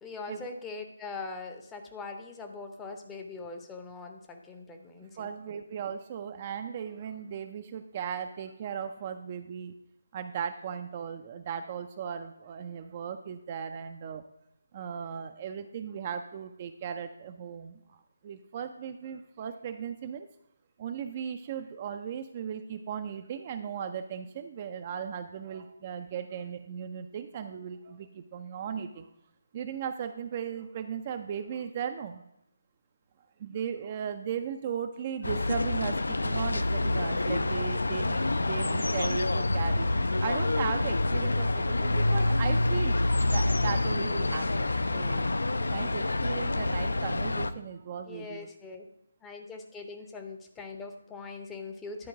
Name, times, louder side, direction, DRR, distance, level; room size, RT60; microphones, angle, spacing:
voice 1, 0.0-5.3 45.5-45.8 48.1-48.9 49.2-52.1, left 3 dB, 10° left, 3 dB, 0.6 m, -42 dB
voice 2, 5.2-9.7 10.1-14.2 14.7-17.7 18.2-20.3 20.8-28.0 28.3-29.0 29.5-32.2 33.4-39.9 40.2-43.0 43.3-44.4 44.9-45.3 45.7-48.5, right 7 dB, 30° right, 7 dB, 0.4 m, -37 dB
sound 1, 35.2-47.5, left 2 dB, 65° left, 0.4 m, -27 dB
10.5 x 4.4 x 4.8 m, 0.83 s
figure-of-eight pair, 150°, 0 cm